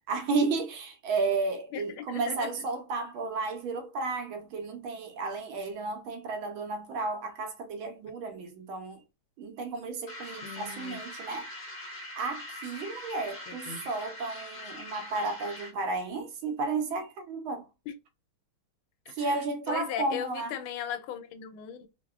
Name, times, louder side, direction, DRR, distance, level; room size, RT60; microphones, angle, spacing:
voice 1, 0.1-9.0 9.4-11.5 12.1-17.7 19.1-20.5, right 3 dB, 75° right, 1.5 m, -33 dB
voice 2, 1.7-2.7 10.4-11.0 13.5-13.9 17.9-18.0 19.1-21.9, left 9 dB, 85° left, 1.4 m, -38 dB
sound 1, 10.1-15.9, left 1 dB, 40° left, 0.6 m, -43 dB
3.6 x 2.1 x 2.3 m
omnidirectional pair, 2.3 m